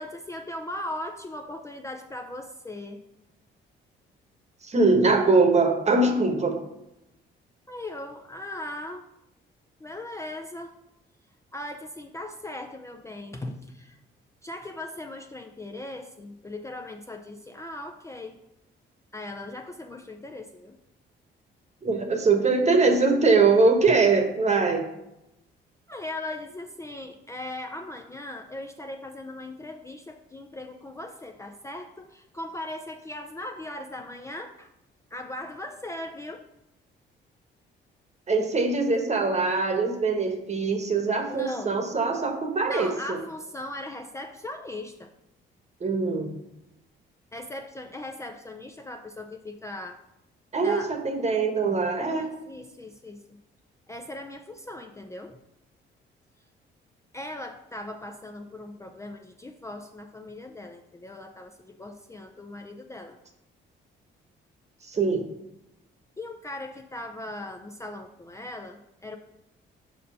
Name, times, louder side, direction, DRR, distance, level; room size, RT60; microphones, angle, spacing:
voice 1, 0.0-3.0 7.7-9.0 9.8-10.7 11.5-14.0 14.4-18.4 19.1-20.8 25.9-34.7 35.1-36.4 41.3-41.8 42.7-45.1 47.3-50.0 50.6-50.9 52.0-53.4 53.9-55.4 57.1-63.2 66.2-69.2, left 1 dB, 15° left, 4 dB, 0.4 m, -39 dB
voice 2, 4.6-6.6 21.8-24.9 38.3-43.2 45.8-46.3 50.5-52.3 64.8-65.3, right 3 dB, 35° right, 5 dB, 1.1 m, -22 dB
5.2 x 4.2 x 5.5 m, 0.89 s
cardioid pair, 90°, 20 cm